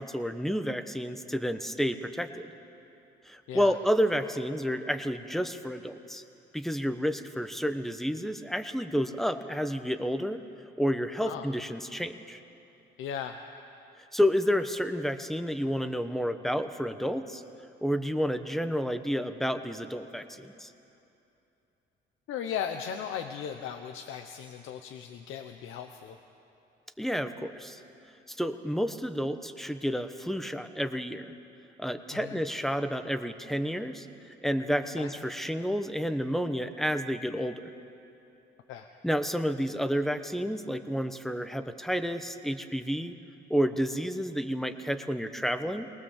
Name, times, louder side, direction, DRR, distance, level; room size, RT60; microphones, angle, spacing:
voice 1, 0.0-2.5 3.2-6.2 6.5-10.4 10.8-12.4 14.1-17.4 17.8-20.7 27.0-27.8 28.3-31.3 31.8-34.1 34.4-37.6 39.0-43.2 43.5-45.9, equal, ahead, 8 dB, 1.1 m, -30 dB
voice 2, 13.0-13.4 22.3-26.2 32.1-32.4 35.0-35.1 38.7-38.9, left 8 dB, 90° left, 6 dB, 0.9 m, -37 dB
22.5 x 19.0 x 7.3 m, 2.8 s
cardioid pair, 90°, 20 cm